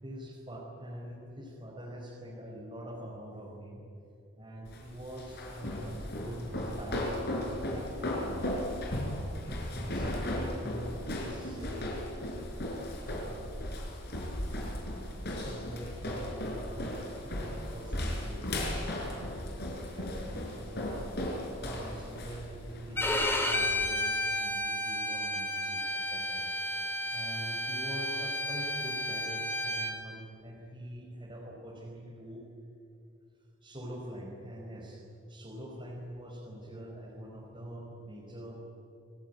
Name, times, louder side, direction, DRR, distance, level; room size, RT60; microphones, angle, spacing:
voice 1, 0.0-3.9 4.4-8.5 9.7-11.9 13.1-13.6 15.2-18.6 19.0-19.4 19.8-21.0 21.3-26.5 27.1-32.4 33.6-38.5, equal, 25° right, -3 dB, 4.5 m, -45 dB
sound 1, 4.7-23.9, left 1 dB, 50° left, 5.6 m, -36 dB
Bowed string instrument, 23.0-29.9, left 1 dB, 10° left, 3.2 m, -32 dB
28.0 x 19.5 x 9.5 m, 2.6 s
head